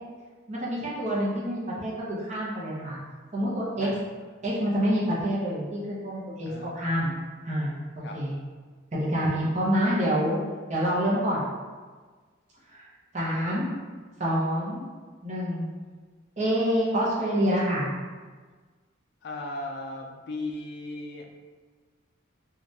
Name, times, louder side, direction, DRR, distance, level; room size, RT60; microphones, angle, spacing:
voice 1, 0.5-3.0 3.3-3.9 4.4-6.5 6.7-7.1 7.4-7.7 8.1-8.3 8.9-10.4 10.7-11.5 12.7-12.9 13.1-13.7 14.2-14.8 15.2-15.7 16.4-17.9, equal, 35° right, -6 dB, 0.7 m, -27 dB
voice 2, 19.2-21.4, left 2 dB, 50° left, 1 dB, 0.3 m, -37 dB
3.2 x 2.4 x 2.7 m, 1.4 s
head